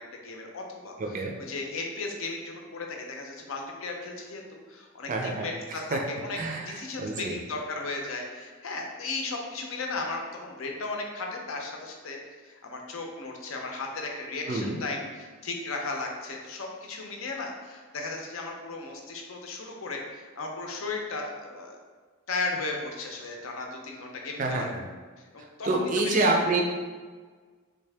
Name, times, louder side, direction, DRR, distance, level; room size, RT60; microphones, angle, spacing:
voice 1, 0.0-6.4 6.7-21.8 22.3-24.7 25.2-26.4, left 3 dB, 75° left, 1 dB, 0.6 m, -36 dB
voice 2, 1.0-1.3 5.1-5.5 5.9-6.0 6.4-7.4 14.5-14.8 24.4-24.8 25.6-26.6, right 2 dB, 35° right, 1 dB, 0.4 m, -27 dB
3.6 x 2.7 x 3.3 m, 1.5 s
head